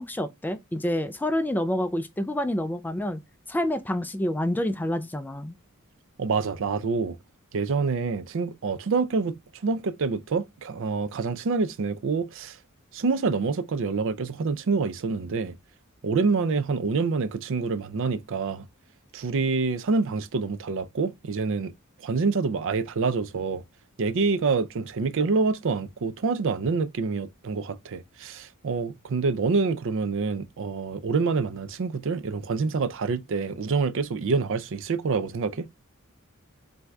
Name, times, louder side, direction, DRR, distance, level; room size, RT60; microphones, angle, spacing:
voice 1, 0.0-3.2 3.5-5.5, left 1 dB, 10° left, 0.3 m, -28 dB
voice 2, 6.2-7.2 7.5-9.4 9.6-12.6 12.9-15.6 16.0-18.6 19.1-21.7 22.0-23.6 24.0-35.7, right 4 dB, 60° right, 0.5 m, -26 dB
7.7 x 2.7 x 2.3 m
head